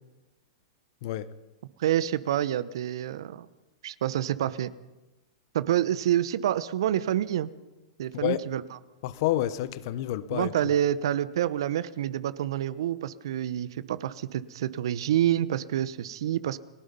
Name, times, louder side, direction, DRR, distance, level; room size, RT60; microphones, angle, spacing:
voice 1, 1.8-3.5 3.8-4.7 5.5-7.5 8.0-8.8 10.3-16.6, right 11 dB, 70° right, 1.0 m, -27 dB
voice 2, 9.0-10.5, left 14 dB, 55° left, 1.2 m, -28 dB
30.0 x 17.5 x 5.4 m
hypercardioid pair, 110°, 3 cm